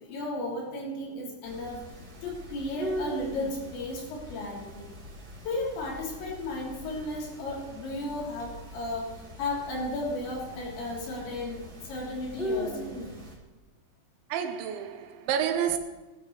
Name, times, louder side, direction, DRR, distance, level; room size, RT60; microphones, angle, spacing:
voice 1, 0.0-1.9 2.2-4.9 5.5-13.0, left 2 dB, 70° left, 5.7 m, -34 dB
sound 1, 1.4-13.3, equal, 25° right, 1.4 m, -40 dB
voice 2, 14.3-15.8, right 9 dB, 85° right, 3.2 m, -29 dB
19.5 x 11.0 x 3.3 m
omnidirectional pair, 5.3 m